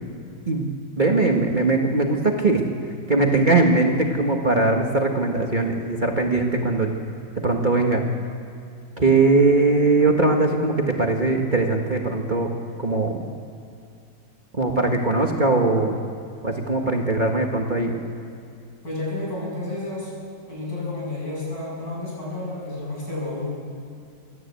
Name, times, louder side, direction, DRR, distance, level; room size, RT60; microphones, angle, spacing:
voice 1, 1.0-6.9 7.4-8.0 9.0-12.5 12.8-13.3 14.6-15.9 16.4-17.9, right 3 dB, 30° right, 1 dB, 1.6 m, -20 dB
voice 2, 18.8-20.1 20.5-23.5, left 2 dB, 60° left, -4 dB, 8.4 m, -31 dB
25.0 x 14.5 x 8.4 m, 2.5 s
omnidirectional pair, 1.8 m